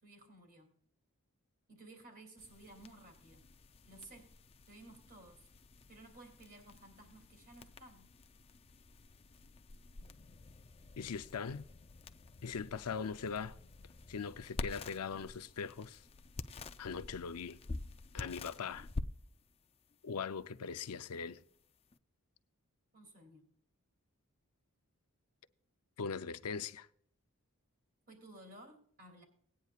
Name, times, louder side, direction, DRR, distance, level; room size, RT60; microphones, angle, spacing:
voice 1, 0.0-0.7 1.7-3.5 3.8-4.3 4.7-5.4 5.9-8.1 22.9-23.5 28.1-29.2, right 2 dB, 40° right, 2.7 m, -56 dB
sound 1, 2.4-22.0, left 3 dB, 25° left, 0.4 m, -49 dB
voice 2, 11.0-11.7 12.4-13.6 14.1-16.0 16.8-17.6 18.1-18.9 20.0-21.4 26.0-26.9, left 6 dB, 90° left, 0.6 m, -40 dB
19.0 x 9.4 x 2.4 m
head